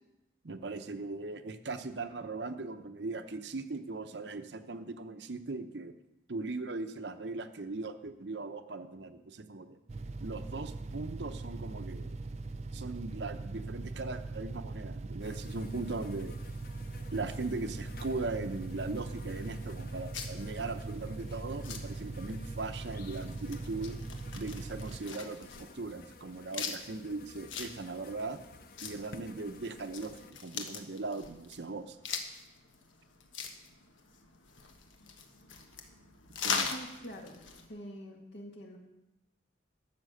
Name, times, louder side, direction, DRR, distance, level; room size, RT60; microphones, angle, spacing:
voice 1, 0.4-5.9 6.3-9.8 10.2-12.2 12.7-16.3 17.1-24.0 24.3-28.4 28.8-32.0 36.4-36.7, right 3 dB, 65° right, 8 dB, 0.8 m, -39 dB
sound 1, 9.9-25.0, right 3 dB, 35° right, 0.4 m, -41 dB
sound 2, 15.2-30.3, left 3 dB, 50° left, 0.8 m, -54 dB
sound 3, 18.9-37.7, left 5 dB, 85° left, 1.3 m, -42 dB
voice 2, 36.7-37.4 37.7-38.8, equal, 65° left, 1 dB, 2.1 m, -45 dB
12.5 x 7.3 x 6.6 m, 0.93 s
head